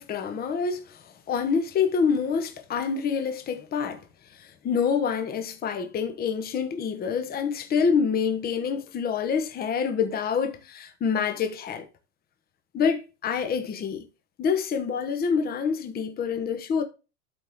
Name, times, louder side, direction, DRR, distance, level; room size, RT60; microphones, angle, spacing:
voice 1, 0.0-4.0 4.3-11.9 12.7-14.0 14.4-16.8, left 6 dB, 25° left, 1.1 m, -27 dB
12.5 x 4.4 x 3.6 m
supercardioid pair, 135°, 36 cm